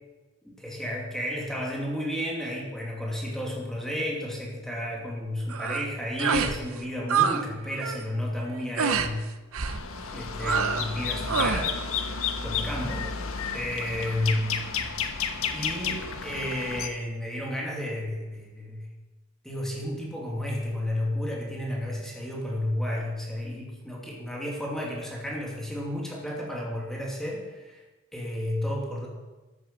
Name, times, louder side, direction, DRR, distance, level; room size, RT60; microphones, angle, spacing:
voice 1, 0.4-9.3 10.1-13.1 13.5-14.8 15.5-18.9 19.4-27.8 28.1-29.1, left 1 dB, ahead, -2 dB, 2.7 m, -32 dB
sound 1, 5.5-5.9 6.2-6.6 6.8-7.4 7.7-8.0 8.8-9.1 9.5-9.8 10.4-10.9 11.3-11.7, right 6 dB, 75° right, 0.9 m, -26 dB
sound 2, 9.7-16.9, left 6 dB, 75° left, 1.3 m, -32 dB
14.0 x 8.4 x 7.6 m, 1.1 s
head